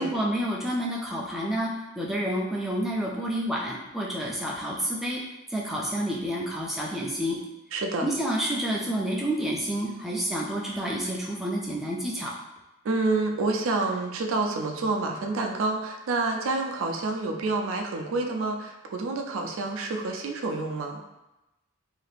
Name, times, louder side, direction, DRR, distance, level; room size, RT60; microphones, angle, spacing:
voice 1, 0.0-5.2 5.5-7.4 8.0-12.3, equal, ahead, -4 dB, 0.3 m, -29 dB
voice 2, 7.7-8.1 12.8-21.0, right 3 dB, 75° right, 2 dB, 0.4 m, -28 dB
2.7 x 2.4 x 3.2 m, 0.98 s
head